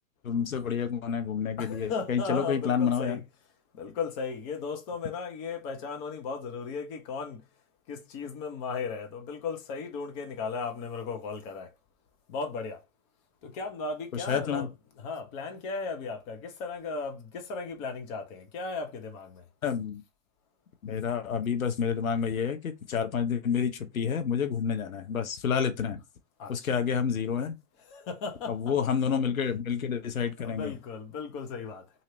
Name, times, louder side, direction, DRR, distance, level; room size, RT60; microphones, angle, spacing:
voice 1, 0.2-3.2 14.1-14.7 19.6-20.0 20.8-26.0 26.5-27.5 28.5-30.7, left 7 dB, 85° left, 0.8 m, -29 dB
voice 2, 1.6-3.2 3.7-7.4 7.9-11.7 12.3-12.8 13.4-14.7 15.0-19.4 26.4-26.8 27.9-28.7 29.1-29.2 30.4-31.8, left 4 dB, 40° left, 1.0 m, -36 dB
3.1 x 2.8 x 2.8 m
hypercardioid pair, 110°, 40 cm